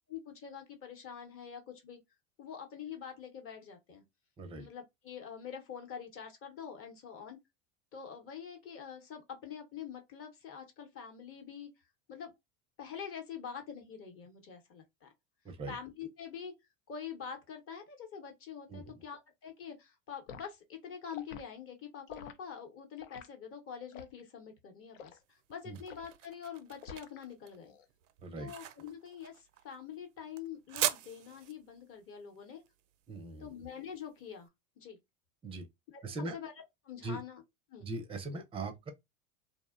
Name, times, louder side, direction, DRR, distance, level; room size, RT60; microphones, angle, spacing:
voice 1, 0.1-2.0 2.4-4.0 4.6-7.4 7.9-11.7 12.1-12.3 12.8-15.1 15.7-16.5 16.9-27.7 28.4-32.6 33.4-34.5 34.8-35.0 35.9-36.5 36.8-37.4 37.7-37.9, left 7 dB, 35° left, 0.8 m, -45 dB
voice 2, 15.4-15.8 18.7-19.0 25.7-25.8 28.2-28.5 33.1-33.5 35.4-35.7 36.0-36.4 37.0-37.2 37.8-38.9, right 2 dB, 15° right, 0.5 m, -40 dB
Liquid, 20.3-20.5 21.1-21.5 22.1-22.4 23.0-23.3 23.9-24.2 24.9-25.2 25.9-26.1 26.8-27.2 27.6-27.9, left 7 dB, 80° left, 0.6 m, -48 dB
sound 1, 25.2-34.3, right 12 dB, 80° right, 0.5 m, -41 dB
2.6 x 2.0 x 2.4 m
hypercardioid pair, 95°, 38 cm